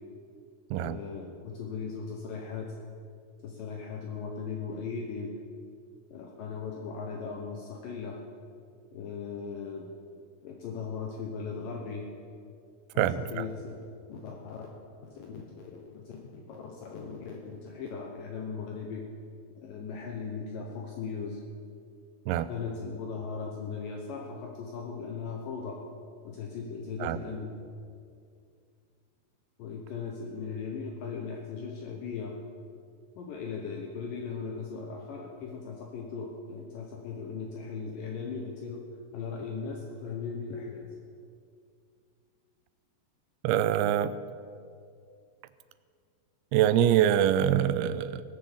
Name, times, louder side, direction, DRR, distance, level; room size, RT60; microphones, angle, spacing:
voice 1, 0.8-2.7 3.4-5.3 6.1-8.2 8.9-9.9 10.4-12.1 12.9-13.8 14.1-14.7 15.0-19.1 19.6-21.4 22.3-25.8 26.2-27.5 29.6-32.4 33.2-38.8 39.1-40.9, left 5 dB, 70° left, 1 dB, 2.5 m, -38 dB
voice 2, 13.0-13.5 22.3-22.5 27.0-27.2 43.4-44.1 46.5-48.2, right 10 dB, 85° right, 14 dB, 2.5 m, -24 dB
18.5 x 7.0 x 7.4 m, 2.3 s
omnidirectional pair, 4.4 m